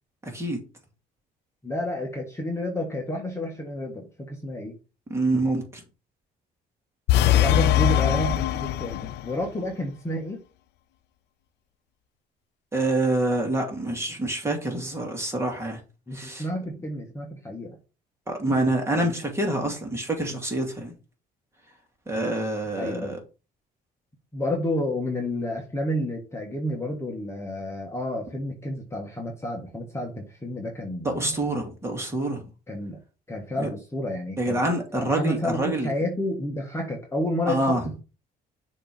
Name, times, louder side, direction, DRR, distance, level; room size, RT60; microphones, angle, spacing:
voice 1, 0.2-0.6 5.1-5.8 12.7-15.8 16.1-16.4 18.3-20.9 22.1-23.2 31.0-32.4 33.6-33.7 34.4-35.9 37.5-37.8, right 1 dB, 15° right, 2.3 m, -26 dB
voice 2, 1.6-4.7 7.2-10.4 16.1-17.8 22.8-23.2 24.3-31.4 32.7-33.0 33.3-34.6 34.9-38.0, left 1 dB, 15° left, 1.5 m, -30 dB
sound 1, 7.1-9.3, left 12 dB, 85° left, 0.4 m, -21 dB
6.6 x 3.1 x 5.3 m
cardioid pair, 110°, 17 cm